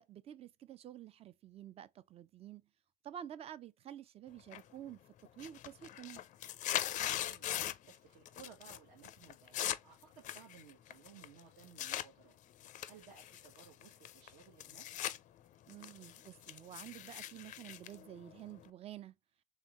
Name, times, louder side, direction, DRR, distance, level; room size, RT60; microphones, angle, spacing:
voice 1, 0.0-2.7 3.0-5.0 5.4-6.2 15.7-19.1, right 11 dB, 30° right, 0.4 m, -50 dB
sound 1, 4.5-4.9 5.2-8.0 8.3-8.8 9.0-12.1 12.6-15.2 15.5-18.7, left 12 dB, 35° left, 0.4 m, -41 dB
voice 2, 6.9-12.4 12.8-14.9, right 7 dB, 65° right, 1.2 m, -59 dB
3.6 x 3.1 x 2.9 m
supercardioid pair, 110°, 21 cm